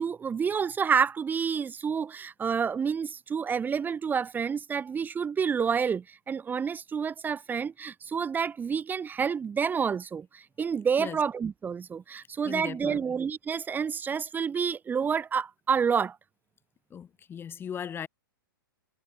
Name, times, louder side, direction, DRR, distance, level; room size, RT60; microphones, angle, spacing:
voice 1, 0.0-16.2, right 6 dB, 15° right, 1.9 m, -29 dB
voice 2, 12.4-13.0 16.9-18.1, left 8 dB, 20° left, 2.2 m, -38 dB
hypercardioid pair, 115°, 12 cm